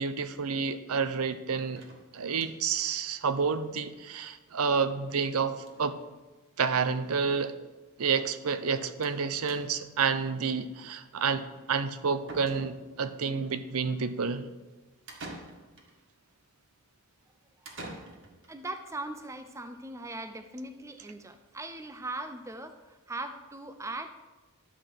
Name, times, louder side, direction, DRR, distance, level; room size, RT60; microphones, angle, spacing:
voice 1, 0.0-1.8 2.1-6.0 6.6-7.6 8.0-14.5, right 5 dB, 80° right, 11 dB, 0.6 m, -29 dB
sound 1, 1.8-2.8 3.1-3.2 3.5-3.6 3.8-3.9 5.1-5.3 5.6-5.9 6.8-6.9 7.2-7.3 9.0-9.2 9.5-10.0 11.7-11.8 12.3-13.1 15.1-15.9 17.6-18.5, right 2 dB, 55° right, 1.8 m, -46 dB
voice 2, 18.5-24.1, right 2 dB, 15° right, 8 dB, 0.5 m, -39 dB
11.0 x 4.9 x 7.5 m, 1.2 s
head